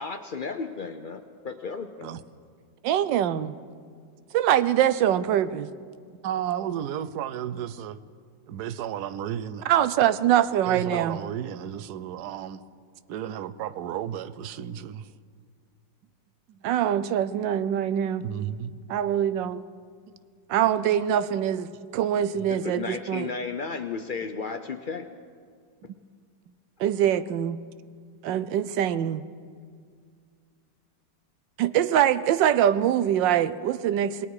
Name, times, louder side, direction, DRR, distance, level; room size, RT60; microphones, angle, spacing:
voice 1, 0.0-2.1 10.9-11.0 22.5-25.1, left 5 dB, 85° left, 7 dB, 0.4 m, -34 dB
voice 2, 2.8-3.5 4.3-5.7 9.6-11.2 16.6-18.2 18.9-19.6 20.5-23.3 26.8-27.6 28.2-29.2 31.6-34.3, right 10 dB, 85° right, 15 dB, 1.4 m, -23 dB
voice 3, 6.2-8.0 8.5-9.6 10.6-12.6 13.1-15.1 16.5-16.6 18.2-18.8, right 10 dB, 65° right, 14 dB, 1.2 m, -33 dB
27.5 x 20.5 x 4.9 m, 2.1 s
omnidirectional pair, 1.9 m